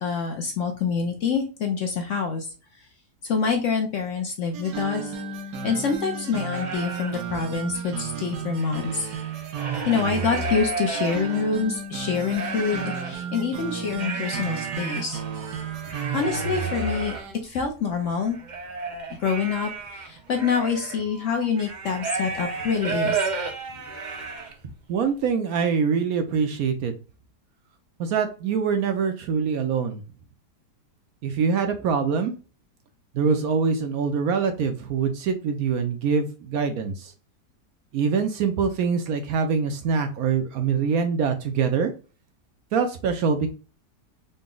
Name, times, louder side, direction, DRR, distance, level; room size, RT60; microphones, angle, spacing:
voice 1, 0.0-2.5 3.3-5.1 5.6-9.1 9.9-15.2 16.1-17.2 17.4-18.4 19.2-23.2, left 5 dB, 60° left, 4 dB, 0.8 m, -26 dB
sound 1, 4.5-17.4, right 5 dB, 85° right, 1.4 m, -33 dB
sound 2, 6.5-7.2 7.7-7.8 8.0-11.6 12.1-13.1 13.9-24.8, right 4 dB, 50° right, 0.5 m, -33 dB
voice 2, 24.9-26.9 28.0-30.0 31.2-32.3 33.1-37.1 37.9-41.9 42.7-43.5, right 5 dB, 70° right, 6 dB, 1.0 m, -24 dB
4.0 x 2.2 x 3.7 m, 0.34 s
omnidirectional pair, 1.8 m